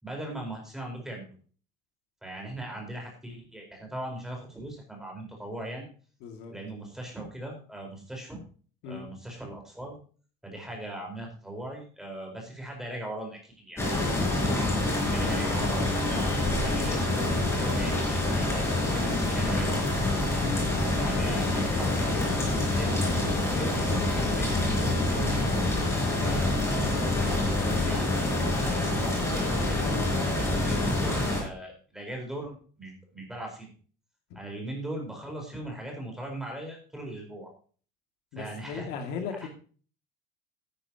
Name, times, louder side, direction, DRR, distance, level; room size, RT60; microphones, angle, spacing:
voice 1, 0.0-1.4 2.2-5.9 6.5-8.4 8.9-10.0 10.4-13.8 14.3-19.9 20.8-22.3 22.7-25.6 26.2-33.7 34.3-37.5 38.3-38.9 39.4-39.5, right 1 dB, ahead, 0 dB, 4.4 m, -39 dB
voice 2, 6.2-6.5 8.8-9.0 14.1-14.5 20.4-20.7 34.3-34.4 38.3-39.5, left 6 dB, 65° left, 5 dB, 2.3 m, -37 dB
sound 1, 13.8-31.4, left 2 dB, 15° left, 4.5 m, -26 dB
13.0 x 11.0 x 2.9 m, 0.40 s
cardioid pair, 160°, 19 cm